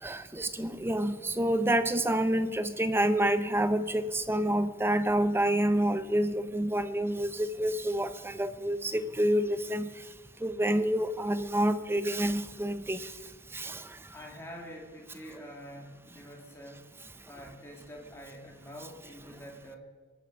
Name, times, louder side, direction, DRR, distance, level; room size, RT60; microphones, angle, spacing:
voice 1, 0.0-10.0 10.4-13.1 13.5-14.0, right 1 dB, 10° right, 11 dB, 0.6 m, -28 dB
voice 2, 14.1-16.9 17.3-19.8, equal, 10° left, -1 dB, 2.6 m, -46 dB
22.5 x 8.9 x 5.3 m, 1.4 s
head